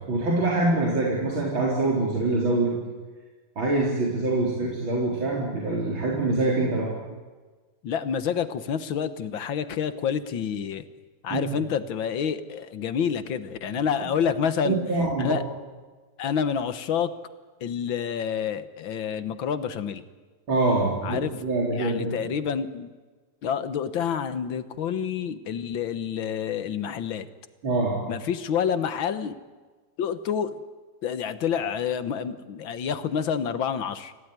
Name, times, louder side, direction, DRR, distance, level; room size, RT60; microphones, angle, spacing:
voice 1, 0.1-2.8 3.6-6.9 11.3-11.5 14.6-15.3 20.5-22.2 27.6-28.0, right 2 dB, 90° right, -3 dB, 4.8 m, -24 dB
voice 2, 7.8-10.9 11.2-14.8 15.2-15.4 16.2-17.1 17.6-20.0 21.0-21.3 21.7-22.9 23.4-27.3 28.1-29.4 30.0-30.6 31.0-34.1, left 7 dB, 80° left, 12 dB, 2.0 m, -28 dB
26.5 x 17.0 x 9.6 m, 1.3 s
omnidirectional pair, 2.1 m